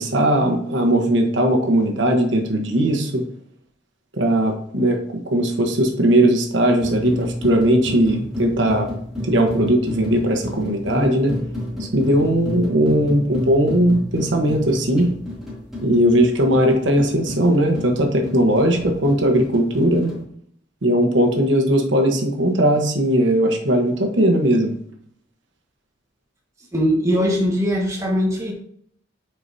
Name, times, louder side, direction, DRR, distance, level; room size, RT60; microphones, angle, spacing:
voice 1, 0.0-3.2 4.1-5.0 5.3-8.9 9.2-11.4 11.8-15.1 15.8-20.1 20.8-24.7, right 1 dB, 90° right, 3 dB, 1.2 m, -18 dB
sound 1, 6.6-20.2, left 1 dB, ahead, 2.7 m, -31 dB
voice 2, 26.7-28.5, equal, 15° right, -2 dB, 1.4 m, -20 dB
8.7 x 4.6 x 2.8 m, 0.63 s
head